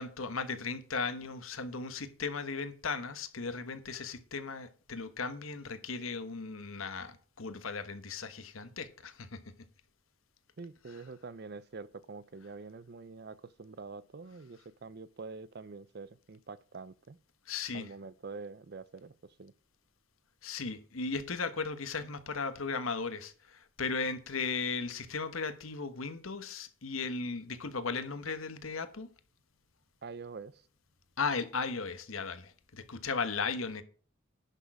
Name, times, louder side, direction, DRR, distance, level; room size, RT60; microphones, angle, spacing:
voice 1, 0.0-9.4 10.9-11.0 17.5-17.9 20.4-29.1 31.2-33.8, left 4 dB, 80° left, 1.2 m, -36 dB
voice 2, 10.6-17.2 17.7-19.1 19.4-19.5 30.0-30.6, right 4 dB, 50° right, 0.5 m, -46 dB
10.5 x 6.4 x 4.8 m
head